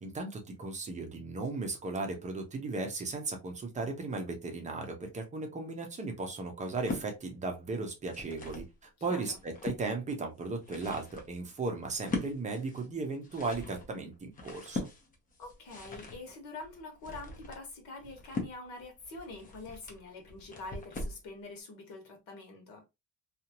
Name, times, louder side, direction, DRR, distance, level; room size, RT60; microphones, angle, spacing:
voice 1, 0.0-14.9, right 3 dB, 20° right, 0.6 m, -36 dB
sound 1, 6.6-7.1 7.8-8.7 9.2-9.8 10.4-21.2, left 3 dB, 20° left, 0.6 m, -41 dB
voice 2, 9.1-9.4 15.4-22.8, left 3 dB, 55° left, 1.1 m, -45 dB
2.8 x 2.4 x 2.8 m
cardioid pair, 165°, 40 cm